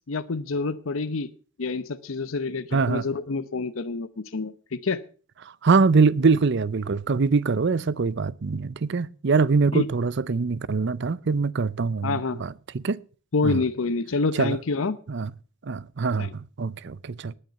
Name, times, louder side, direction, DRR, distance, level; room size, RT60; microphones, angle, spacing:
voice 1, 0.1-1.3 1.6-5.0 9.7-9.9 12.0-12.4 13.3-15.0 16.2-16.3, left 3 dB, 80° left, 0.7 m, -27 dB
voice 2, 2.7-3.0 5.6-13.0 13.4-13.6 14.3-14.6 15.1-15.3 15.6-17.3, right 4 dB, 60° right, 0.6 m, -23 dB
19.0 x 6.7 x 6.7 m
head